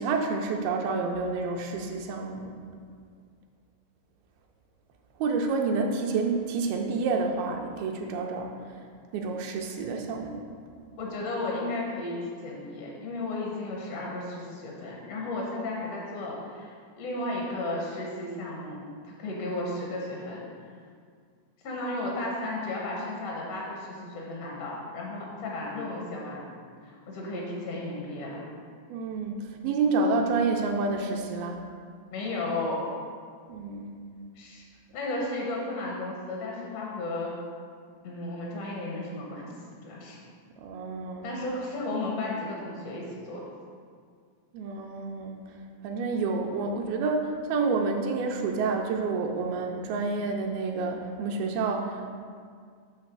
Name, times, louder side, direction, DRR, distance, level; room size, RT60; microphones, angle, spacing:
voice 1, 0.0-2.5 5.2-8.5 9.1-10.4 28.9-31.6 33.5-33.9 40.6-41.3 44.5-45.4 45.8-52.1, right 4 dB, 85° right, 2 dB, 2.4 m, -29 dB
voice 2, 11.0-18.8 19.0-20.4 21.6-26.4 26.8-28.4 32.1-32.8 34.4-34.6 34.9-37.3 38.0-39.5 39.8-40.2 41.2-43.4, left 2 dB, 70° left, -3 dB, 1.5 m, -34 dB
8.5 x 3.2 x 6.0 m, 2.1 s
omnidirectional pair, 4.2 m